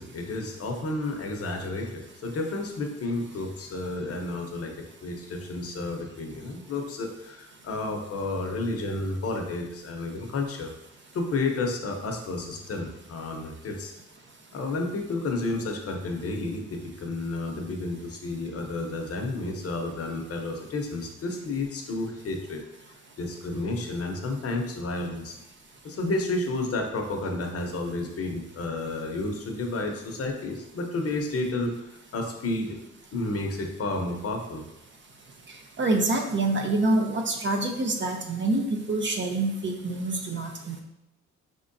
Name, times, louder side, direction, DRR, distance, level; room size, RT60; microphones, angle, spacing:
voice 1, 0.0-4.7 5.0-10.7 11.1-13.9 14.5-22.6 23.2-25.4 25.8-32.8 33.1-34.6, left 2 dB, 50° left, 2 dB, 0.8 m, -31 dB
voice 2, 35.8-40.8, right 2 dB, 40° right, 3 dB, 0.7 m, -26 dB
4.8 x 3.6 x 2.7 m, 0.89 s
cardioid pair, 90°, 30 cm